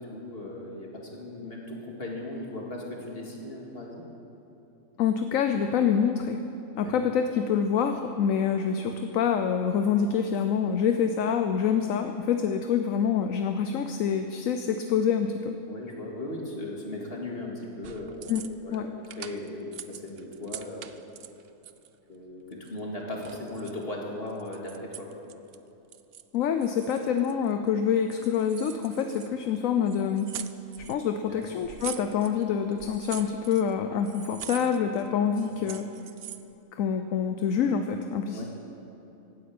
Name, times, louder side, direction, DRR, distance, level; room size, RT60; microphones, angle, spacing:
voice 1, 0.0-4.0 6.8-6.9 15.7-18.4 18.6-20.9 22.1-25.1 31.2-31.4 38.3-38.5, left 1 dB, 45° left, -1 dB, 2.5 m, -37 dB
voice 2, 5.0-6.4 6.8-15.6 18.3-18.4 18.7-18.9 26.3-30.3 30.9-35.9 36.7-38.4, left 7 dB, 70° left, 7 dB, 1.1 m, -26 dB
sound 1, 17.8-18.8 19.0-22.0 22.5-23.8 24.3-25.6 25.9-26.4 26.6-27.7 28.1-29.6 29.9-31.0 31.4-32.4 32.7-33.7 34.0-35.1 35.3-36.5, right 10 dB, 60° right, 0.7 m, -43 dB
16.0 x 9.5 x 8.6 m, 2.9 s
omnidirectional pair, 1.5 m